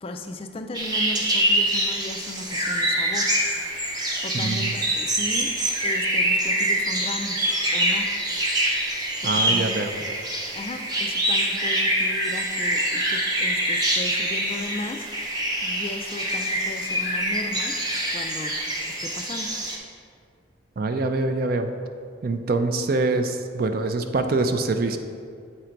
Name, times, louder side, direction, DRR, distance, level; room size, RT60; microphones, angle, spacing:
voice 1, 0.0-3.3 4.2-5.5 5.8-8.1 9.2-9.9 10.5-15.1 15.6-17.8 18.1-18.6 19.0-19.6, left 2 dB, 30° left, 6 dB, 0.3 m, -36 dB
sound 1, 0.7-19.8, right 1 dB, 20° right, 0.7 m, -25 dB
voice 2, 4.3-4.8 9.2-10.0 20.8-21.7 22.2-25.0, right 3 dB, 50° right, 7 dB, 0.4 m, -24 dB
7.6 x 3.8 x 4.5 m, 2.2 s
head